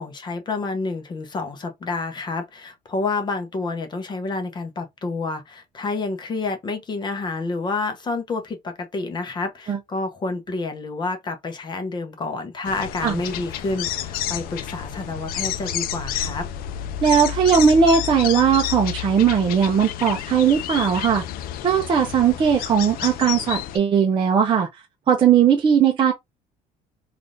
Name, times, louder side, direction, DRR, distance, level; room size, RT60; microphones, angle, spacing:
voice 1, 0.0-16.5, left 3 dB, 30° left, 0.7 m, -29 dB
sound 1, 12.6-23.8, left 11 dB, 70° left, 0.4 m, -30 dB
voice 2, 17.0-21.2 21.6-24.7 25.1-26.1, right 7 dB, 30° right, 0.5 m, -18 dB
3.4 x 2.4 x 2.5 m
cardioid pair, 140°, 16 cm